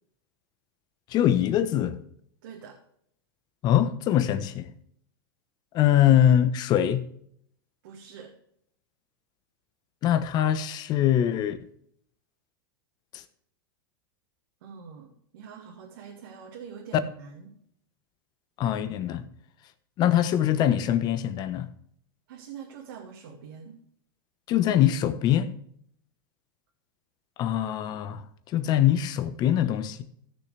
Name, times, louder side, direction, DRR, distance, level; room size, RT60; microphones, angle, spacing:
voice 1, 1.1-2.0 3.6-4.7 5.7-7.0 10.0-11.6 13.1-13.2 18.6-19.2 20.0-21.7 24.5-25.5 27.4-28.2 28.5-30.0, left 11 dB, 35° left, 1.1 m, -23 dB
voice 2, 2.4-2.8 7.8-8.3 14.6-15.1 15.3-17.6 22.3-23.8, right 7 dB, 70° right, 2.2 m, -44 dB
15.5 x 6.9 x 3.4 m
supercardioid pair, 135°, 12 cm